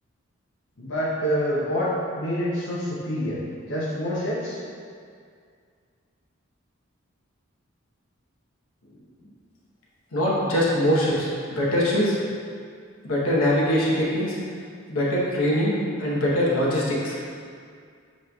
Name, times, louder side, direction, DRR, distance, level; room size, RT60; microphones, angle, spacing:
voice 1, 0.8-3.4 3.7-4.6, equal, 60° left, -7 dB, 0.7 m, -26 dB
voice 2, 10.1-12.2 13.0-14.4 14.9-15.7 16.0-17.2, equal, 85° left, -5 dB, 1.0 m, -22 dB
7.3 x 3.1 x 2.3 m, 2.2 s
head